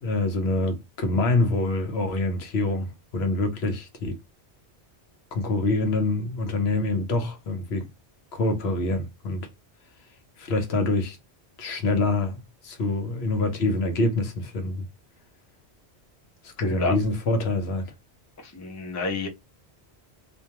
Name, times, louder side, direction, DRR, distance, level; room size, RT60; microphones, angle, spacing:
voice 1, 0.0-4.2 5.3-7.9 8.3-9.5 10.4-11.2 11.6-14.9 16.4-17.9, left 2 dB, 75° left, 0.9 m, -26 dB
voice 2, 16.6-17.0 18.4-19.3, left 3 dB, 20° left, 0.5 m, -29 dB
2.5 x 2.2 x 2.7 m
omnidirectional pair, 1.1 m